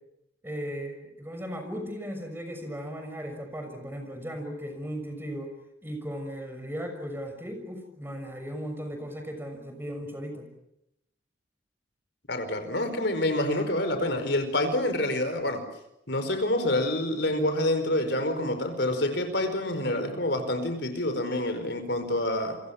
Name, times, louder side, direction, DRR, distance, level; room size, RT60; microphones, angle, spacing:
voice 1, 0.4-5.5 5.8-10.5, equal, 10° right, 6 dB, 6.2 m, -37 dB
voice 2, 12.3-15.6 16.1-22.6, left 1 dB, 70° left, 9 dB, 4.8 m, -27 dB
29.0 x 24.5 x 7.3 m, 0.82 s
head